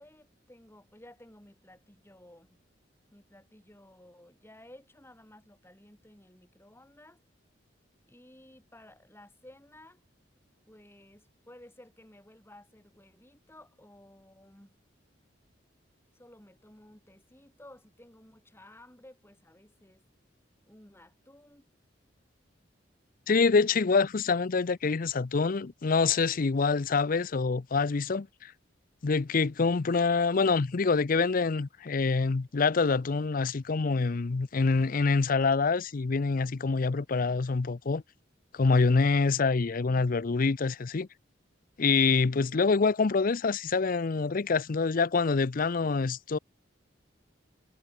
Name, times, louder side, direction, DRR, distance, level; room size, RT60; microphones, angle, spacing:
voice 1, 0.0-2.6 3.1-7.2 8.1-10.0 10.7-14.7 16.1-20.0 20.7-21.7, left 1 dB, 15° left, 4.3 m, -55 dB
voice 2, 23.3-28.5 29.0-38.0 38.5-41.1 41.8-46.4, left 4 dB, 50° left, 0.5 m, -26 dB
head